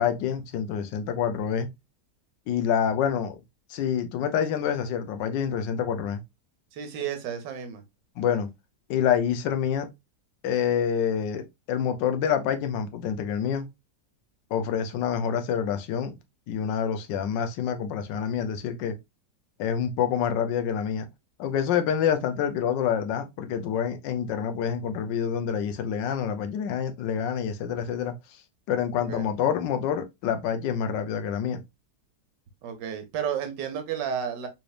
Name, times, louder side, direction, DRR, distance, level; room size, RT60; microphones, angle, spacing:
voice 1, 0.0-1.7 2.5-3.4 3.7-6.2 8.2-8.5 8.9-9.9 10.4-13.7 14.5-16.1 16.5-18.9 19.6-21.1 21.4-28.1 28.7-31.6, left 8 dB, 90° left, 1.3 m, -27 dB
voice 2, 6.7-7.8 29.0-29.3 32.6-34.5, right 8 dB, 80° right, 1.5 m, -32 dB
4.0 x 3.2 x 2.3 m
omnidirectional pair, 1.9 m